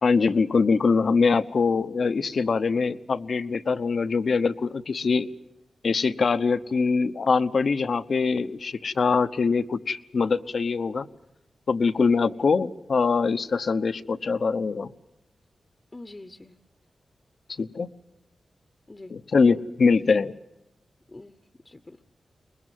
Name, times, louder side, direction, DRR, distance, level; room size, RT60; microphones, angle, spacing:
voice 1, 0.0-5.3 5.8-11.1 11.7-14.9 17.6-17.9 19.1-20.4, left 4 dB, 65° left, 12 dB, 0.9 m, -23 dB
voice 2, 12.0-12.3 15.9-16.6 18.9-19.1 21.1-21.4 21.6-22.0, left 2 dB, 25° left, 10 dB, 1.0 m, -44 dB
23.5 x 21.0 x 9.2 m, 0.88 s
cardioid pair, 80°, 0 cm